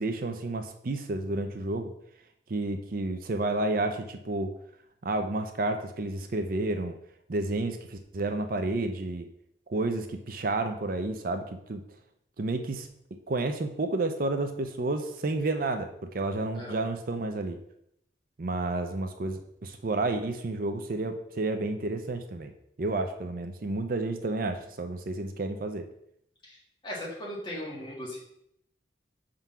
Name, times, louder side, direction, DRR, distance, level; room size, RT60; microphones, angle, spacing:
voice 1, 0.0-1.9 2.5-4.6 5.0-6.9 7.3-9.3 9.7-11.8 12.4-12.9 13.3-17.6 18.4-22.5 22.8-25.9, right 2 dB, 50° right, 7 dB, 0.5 m, -31 dB
voice 2, 26.8-28.2, left 1 dB, 25° left, -5 dB, 2.0 m, -37 dB
6.0 x 3.8 x 5.5 m, 0.75 s
head